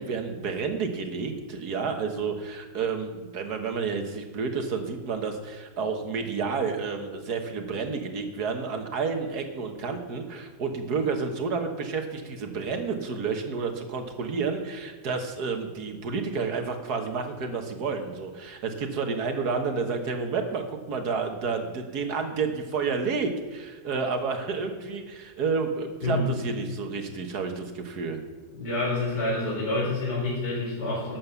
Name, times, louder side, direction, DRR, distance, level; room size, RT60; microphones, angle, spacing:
voice 1, 0.0-28.2, right 5 dB, 65° right, 5 dB, 1.8 m, -30 dB
voice 2, 28.6-31.2, left 2 dB, 70° left, -8 dB, 4.5 m, -28 dB
12.0 x 7.6 x 6.9 m, 1.4 s
omnidirectional pair, 1.9 m